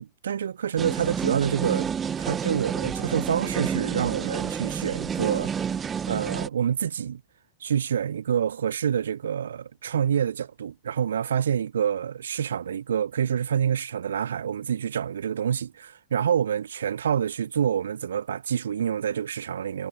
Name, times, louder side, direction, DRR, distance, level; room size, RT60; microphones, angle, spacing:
voice 1, 0.0-1.9 2.2-5.5 6.1-7.2 7.6-19.9, right 8 dB, 65° right, 1.4 m, -27 dB
sound 1, 0.8-6.5, right 7 dB, 20° right, 1.7 m, -29 dB
figure-of-eight pair, 90°, 0 cm